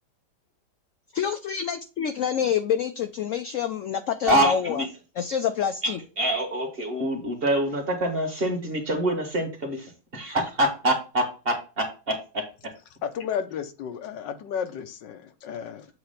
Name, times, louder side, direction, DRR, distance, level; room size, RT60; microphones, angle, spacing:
voice 1, 1.1-4.8 5.2-6.0, left 8 dB, 65° left, 7 dB, 0.8 m, -27 dB
voice 2, 4.2-4.9 5.8-5.9 6.2-12.4, right 1 dB, 35° right, 3 dB, 1.7 m, -26 dB
voice 3, 13.0-15.9, left 8 dB, 85° left, 8 dB, 1.5 m, -33 dB
7.9 x 3.0 x 5.7 m, 0.32 s
omnidirectional pair, 1.9 m